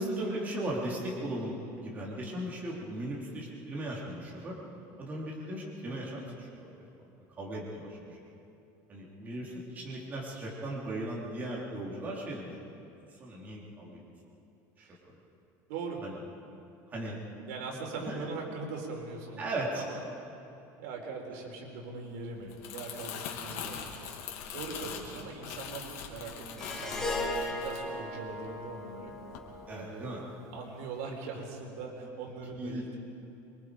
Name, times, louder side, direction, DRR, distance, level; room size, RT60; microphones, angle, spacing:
voice 1, 0.0-4.6 5.0-6.5 7.4-8.2 8.9-12.5 13.2-14.1 14.8-15.1 16.0-16.1 16.9-17.2 18.0-18.3 19.4-19.8 29.7-30.2 32.6-32.8, right 1 dB, 20° right, -4 dB, 3.5 m, -37 dB
voice 2, 15.7-16.0 17.4-19.4 19.7-20.0 20.8-24.2 24.5-29.1 29.7-30.1 30.5-33.0, right 4 dB, 85° right, 1 dB, 4.3 m, -41 dB
Crumpling crinkling, 22.3-28.7 29.1-29.4, left 7 dB, 85° left, 2.7 m, -42 dB
Harp, 26.6-31.0, left 1 dB, 5° left, 1.9 m, -38 dB
26.5 x 23.0 x 5.0 m, 2.8 s
cardioid pair, 170°, 8 cm